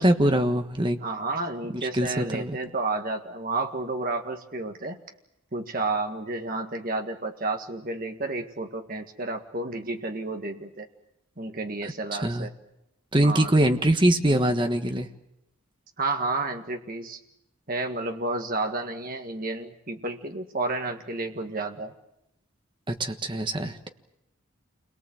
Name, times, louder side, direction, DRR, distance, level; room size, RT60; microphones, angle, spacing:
voice 1, 0.0-1.0 1.7-2.6 11.8-12.5 13.1-15.1 22.9-23.9, right 1 dB, 20° right, 6 dB, 1.4 m, -23 dB
voice 2, 1.0-5.0 5.5-10.9 11.4-12.5 13.2-13.5 16.0-17.2 17.7-21.9, right 2 dB, 40° right, 4 dB, 1.7 m, -31 dB
28.5 x 22.5 x 7.8 m, 0.84 s
head